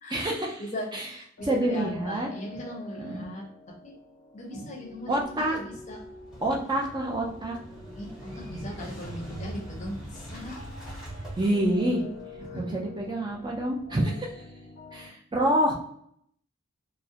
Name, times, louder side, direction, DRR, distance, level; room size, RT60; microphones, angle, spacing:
voice 1, 0.1-0.6 0.9-1.1 1.4-2.3 3.0-3.2 4.6-4.7 5.1-5.6 6.4-7.6 11.4-12.0 12.6-14.4 14.9-15.7, right 1 dB, 20° right, 0 dB, 0.3 m, -27 dB
voice 2, 1.2-3.9 4.3-6.0 8.0-10.6 12.5-12.8, equal, 35° left, 0 dB, 0.6 m, -39 dB
sound 1, 1.4-15.1, left 2 dB, 90° left, 0.5 m, -47 dB
Motorcycle / Engine starting, 5.3-12.5, right 1 dB, ahead, 0.8 m, -42 dB
2.3 x 2.0 x 2.7 m, 0.68 s
head